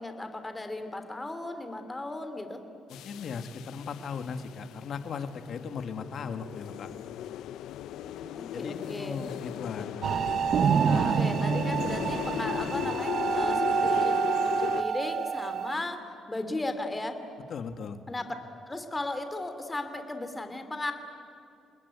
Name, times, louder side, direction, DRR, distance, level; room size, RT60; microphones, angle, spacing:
voice 1, 0.0-2.6 8.0-9.2 11.0-14.2 14.4-17.2 18.1-20.9, left 2 dB, 15° left, 8 dB, 3.0 m, -36 dB
sound 1, 2.9-14.8, left 11 dB, 85° left, 0.6 m, -37 dB
voice 2, 2.9-6.9 8.5-10.0 10.8-11.2 17.5-18.0, left 6 dB, 60° left, 8 dB, 1.8 m, -37 dB
sound 2, 10.0-15.8, right 7 dB, 60° right, 0.7 m, -27 dB
29.0 x 20.0 x 9.6 m, 2.5 s
cardioid pair, 90°, 0 cm